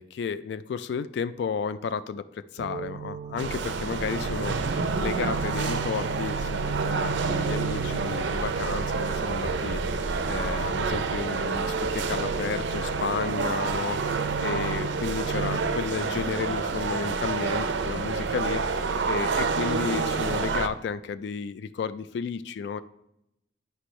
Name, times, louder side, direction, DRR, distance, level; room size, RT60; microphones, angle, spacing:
voice 1, 0.0-14.0 14.4-22.8, left 6 dB, 75° left, 14 dB, 0.3 m, -33 dB
sound 1, 2.6-15.6, right 6 dB, 35° right, 0.3 m, -37 dB
sound 2, 3.4-20.7, right 4 dB, 90° right, 0.5 m, -28 dB
sound 3, 3.6-10.9, equal, 35° left, 2.2 m, -46 dB
10.0 x 5.2 x 3.1 m, 0.83 s
head